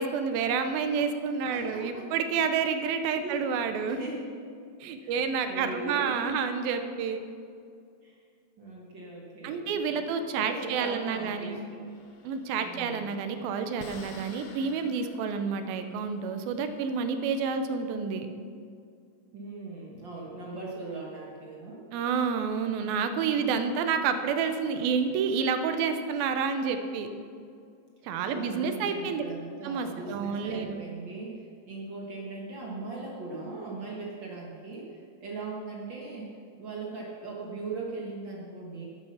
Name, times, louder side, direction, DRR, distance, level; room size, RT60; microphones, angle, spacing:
voice 1, 0.0-4.0 4.8-7.2 9.4-11.6 12.2-18.3 21.9-27.1 28.0-29.2 29.6-30.8, right 6 dB, 85° right, 8 dB, 2.6 m, -29 dB
voice 2, 1.5-2.1 3.2-3.5 3.8-4.3 5.0-5.1 5.4-6.3 8.0-8.2 8.6-10.0 10.3-11.8 12.6-13.0 19.3-21.8 28.2-38.8, right 3 dB, 55° right, -3 dB, 1.4 m, -39 dB
sound 1, 11.9-17.4, left 4 dB, 75° left, 1.3 m, -51 dB
12.0 x 8.7 x 5.7 m, 2.3 s
omnidirectional pair, 4.2 m